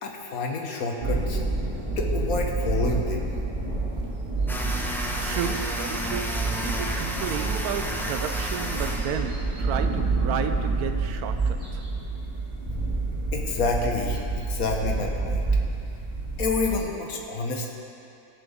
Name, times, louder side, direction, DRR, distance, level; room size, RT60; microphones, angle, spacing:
voice 1, 0.0-1.4 2.0-3.3 13.3-15.4 16.4-17.7, left 3 dB, 70° left, 1 dB, 1.6 m, -28 dB
sound 1, 1.0-16.8, right 3 dB, 30° right, 2.4 m, -28 dB
sound 2, 4.5-9.6, equal, 5° left, 0.3 m, -32 dB
voice 2, 5.2-11.8, right 8 dB, 80° right, 8 dB, 1.1 m, -32 dB
18.5 x 6.8 x 3.6 m, 2.6 s
omnidirectional pair, 1.6 m